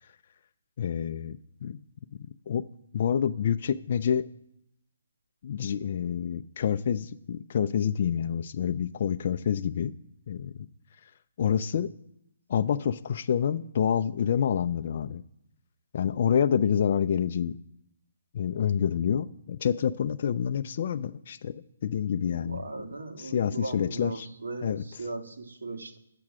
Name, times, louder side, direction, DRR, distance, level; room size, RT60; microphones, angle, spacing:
voice 1, 0.8-1.4 1.6-1.8 2.5-2.6 2.9-4.3 5.4-9.9 10.3-10.5 11.4-11.9 12.5-15.2 15.9-17.6 18.3-22.6 23.2-24.3 24.6-24.8, left 8 dB, 45° left, 8 dB, 0.4 m, -27 dB
voice 2, 22.4-26.0, right 3 dB, 80° right, 4 dB, 1.5 m, -38 dB
7.6 x 6.0 x 7.4 m, 0.80 s
hypercardioid pair, 160°, 0 cm